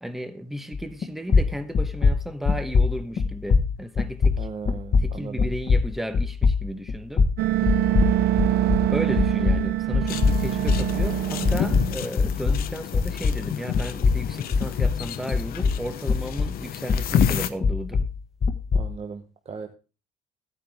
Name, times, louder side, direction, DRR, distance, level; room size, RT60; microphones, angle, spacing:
voice 1, 0.0-4.4 5.0-7.3 8.9-18.1, equal, ahead, 1.1 m, -34 dB
sound 1, 0.7-1.0 1.3-8.9 9.2-13.5 13.7-16.6 16.9-18.9, left 4 dB, 40° left, 1.4 m, -23 dB
voice 2, 4.4-5.5 18.7-19.7, right 5 dB, 40° right, 1.1 m, -37 dB
sound 2, 7.4-12.0, right 13 dB, 70° right, 0.6 m, -24 dB
sound 3, 10.1-17.5, left 10 dB, 65° left, 1.0 m, -30 dB
14.0 x 9.2 x 3.6 m
cardioid pair, 110°, 17 cm